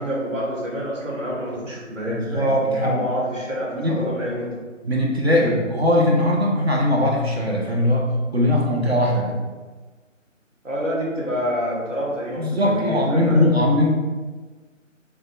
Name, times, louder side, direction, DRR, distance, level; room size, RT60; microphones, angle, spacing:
voice 1, 0.0-4.5 5.4-5.5 10.6-13.4, equal, 75° right, -5 dB, 1.4 m, -27 dB
voice 2, 2.1-3.0 3.7-4.0 4.8-9.3 12.4-13.9, left 1 dB, 55° right, -2 dB, 0.7 m, -20 dB
4.8 x 2.2 x 2.5 m, 1.3 s
figure-of-eight pair, 155°, 38 cm